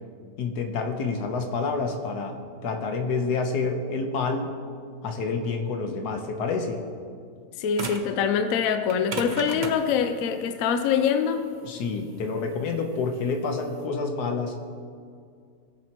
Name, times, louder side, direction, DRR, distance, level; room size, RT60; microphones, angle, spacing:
voice 1, 0.4-4.5 5.0-6.8 11.6-14.7, left 4 dB, 85° left, 4 dB, 1.5 m, -28 dB
voice 2, 7.6-11.4, left 7 dB, 70° left, 8 dB, 1.0 m, -24 dB
sound 1, 7.8-8.2 8.9-13.8, right 4 dB, 45° right, 0.6 m, -36 dB
17.5 x 7.5 x 2.9 m, 2.2 s
omnidirectional pair, 1.7 m